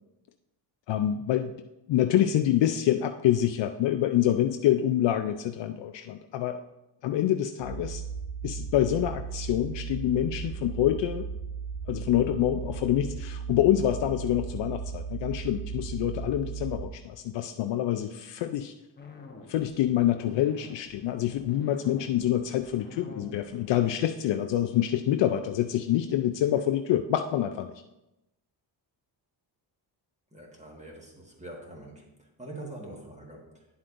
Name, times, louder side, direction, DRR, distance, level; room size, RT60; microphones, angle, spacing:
voice 1, 0.9-1.5 1.9-6.6 7.0-8.0 8.4-11.3 11.9-18.7 19.5-27.7, left 11 dB, 70° left, 7 dB, 0.5 m, -26 dB
sound 1, 7.6-16.9, right 6 dB, 55° right, 2.0 m, -36 dB
sound 2, 19.0-23.9, left 3 dB, 20° left, 0.9 m, -48 dB
voice 2, 30.3-33.7, right 1 dB, 15° right, -1 dB, 1.6 m, -44 dB
9.5 x 7.6 x 2.5 m, 0.93 s
cardioid pair, 110°, 46 cm